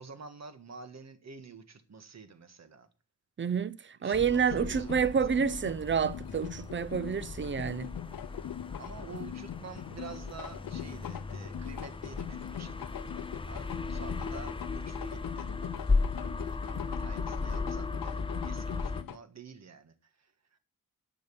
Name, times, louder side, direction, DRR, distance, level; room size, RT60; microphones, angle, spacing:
voice 1, 0.0-2.9 4.0-5.3 8.8-12.8 13.4-15.5 17.0-20.6, right 5 dB, 50° right, 1.6 m, -49 dB
voice 2, 3.4-7.9, right 6 dB, 35° right, 0.5 m, -29 dB
sound 1, 4.1-19.0, left 3 dB, 15° left, 0.5 m, -36 dB
sound 2, 4.5-19.2, left 11 dB, 80° left, 0.6 m, -42 dB
10.5 x 6.8 x 6.9 m
wide cardioid pair, 135°, 34 cm